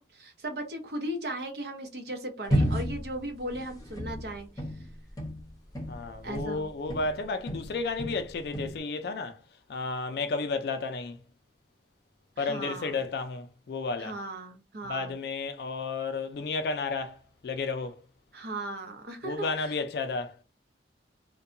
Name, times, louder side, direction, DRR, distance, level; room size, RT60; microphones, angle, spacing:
voice 1, 0.0-4.5 6.2-6.7 12.4-12.9 14.0-15.1 18.3-19.7, right 1 dB, 65° right, 0.7 m, -37 dB
sound 1, 2.5-7.2 7.5-8.8, equal, 20° left, 0.7 m, -32 dB
voice 2, 5.9-9.4 9.7-11.2 12.4-14.2 14.9-18.0 19.2-20.4, left 4 dB, 65° left, 0.3 m, -32 dB
2.7 x 2.2 x 2.5 m
head